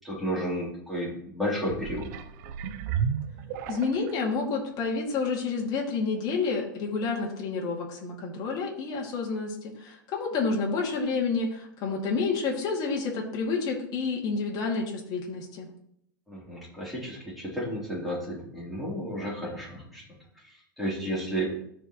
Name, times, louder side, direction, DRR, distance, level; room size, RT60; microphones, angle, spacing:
voice 1, 0.0-2.1 16.3-20.0 20.4-21.4, equal, ahead, -6 dB, 3.4 m, -32 dB
sound 1, 1.6-4.2 4.9-5.0, right 7 dB, 55° right, 0.6 m, -33 dB
voice 2, 3.7-15.7, left 4 dB, 40° left, -1 dB, 2.3 m, -29 dB
13.5 x 4.8 x 3.1 m, 0.71 s
supercardioid pair, 130°, 11 cm